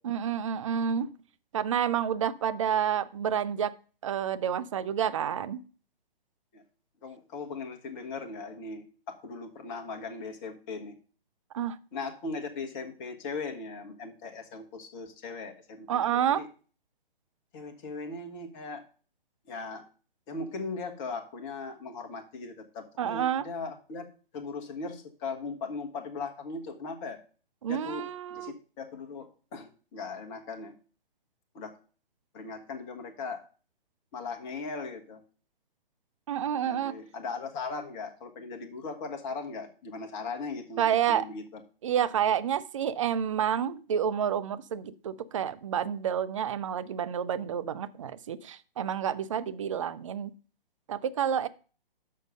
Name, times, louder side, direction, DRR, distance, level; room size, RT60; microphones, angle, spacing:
voice 1, 0.0-1.1 1.5-3.7 4.0-5.6 11.5-11.8 15.9-16.4 23.0-23.4 27.6-28.5 36.3-37.0 40.8-41.2 41.8-50.3 50.9-51.5, right 9 dB, 35° right, 15 dB, 0.5 m, -29 dB
voice 2, 7.0-11.0 11.9-16.5 17.5-18.9 19.5-19.9 20.3-24.1 24.3-27.2 27.7-30.8 31.5-31.8 32.3-33.4 34.1-35.2 36.6-41.6, left 4 dB, 20° left, 4 dB, 1.3 m, -39 dB
6.5 x 6.4 x 5.3 m, 0.37 s
figure-of-eight pair, 135°, 29 cm